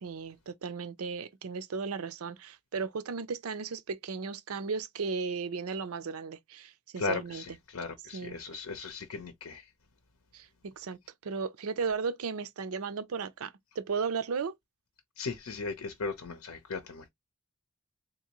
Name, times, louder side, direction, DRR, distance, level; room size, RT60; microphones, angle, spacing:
voice 1, 0.0-7.4 8.1-8.4 10.3-11.0 11.2-14.5, right 5 dB, 75° right, 0.5 m, -35 dB
voice 2, 7.0-9.7 15.2-17.1, left 4 dB, 90° left, 0.7 m, -37 dB
3.7 x 2.6 x 2.9 m
head